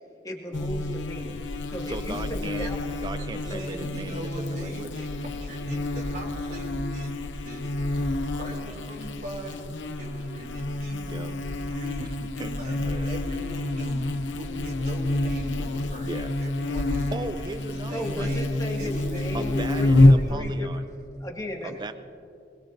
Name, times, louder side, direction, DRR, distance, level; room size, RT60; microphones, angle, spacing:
voice 1, 0.2-1.4 1.7-2.8 3.5-3.6 5.7-5.8 17.9-20.7 21.2-21.8, left 1 dB, 20° left, -1 dB, 2.2 m, -35 dB
Buzz, 0.5-20.3, left 1 dB, 90° left, 0.8 m, -27 dB
voice 2, 1.9-2.7 3.0-4.9 11.1-11.3 12.0-13.1 16.0-16.3 17.1-18.4 19.3-20.9 21.6-21.9, right 2 dB, 25° right, 10 dB, 0.6 m, -37 dB
voice 3, 2.6-7.7 8.2-9.6 10.0-11.3 11.7-12.0 12.4-12.8 13.1-14.1 14.3-17.1 17.6-18.5 18.8-20.5 20.9-21.1, right 1 dB, 55° right, -4 dB, 3.4 m, -40 dB
24.5 x 21.0 x 2.8 m, 2.5 s
head